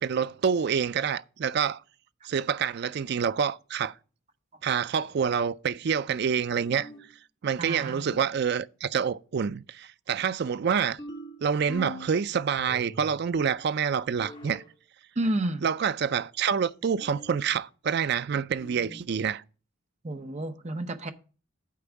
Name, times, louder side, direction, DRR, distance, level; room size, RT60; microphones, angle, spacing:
voice 1, 0.0-1.8 2.2-3.9 4.6-6.9 7.4-11.0 11.4-14.6 15.6-19.4, right 7 dB, 50° right, 0.4 m, -27 dB
sound 1, 6.6-7.1 7.8-8.3 11.0-12.2 12.6-13.2 14.2-14.7 17.0-17.5 18.6-19.1, equal, 25° left, 1.2 m, -43 dB
voice 2, 7.6-8.0 15.2-15.6 20.0-21.1, right 1 dB, 35° right, 0.7 m, -30 dB
8.5 x 4.6 x 7.1 m
head